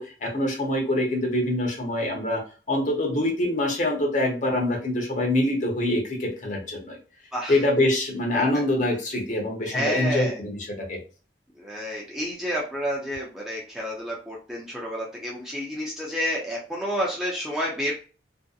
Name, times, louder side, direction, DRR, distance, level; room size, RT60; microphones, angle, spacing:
voice 1, 0.0-2.4 2.7-7.0 7.5-10.6 10.9-11.0, left 1 dB, 45° left, 0 dB, 0.8 m, -25 dB
voice 2, 9.6-10.4 11.6-17.9, equal, 5° right, -4 dB, 0.5 m, -30 dB
2.6 x 2.1 x 2.4 m, 0.36 s
head